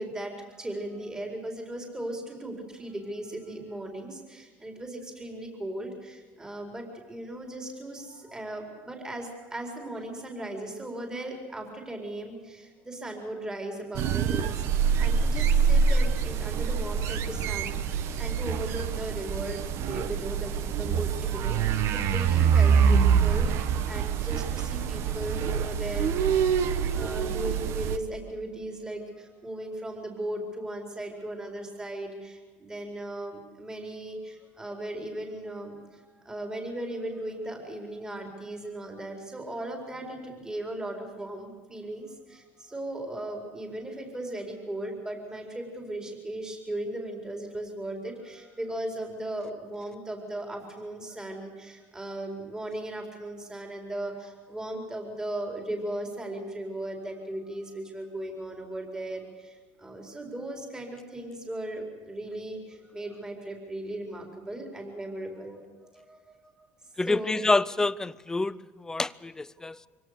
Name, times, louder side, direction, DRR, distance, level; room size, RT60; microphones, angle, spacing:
voice 1, 0.0-26.4 26.9-65.6 65.9-66.7 67.0-67.4 69.6-69.9, right 1 dB, 15° right, 4.6 m, -37 dB
sound 1, 13.9-28.0, right 6 dB, 60° right, 1.3 m, -25 dB
voice 2, 67.0-69.8, left 3 dB, 10° left, 0.6 m, -27 dB
25.0 x 17.5 x 6.8 m
supercardioid pair, 115°, 5 cm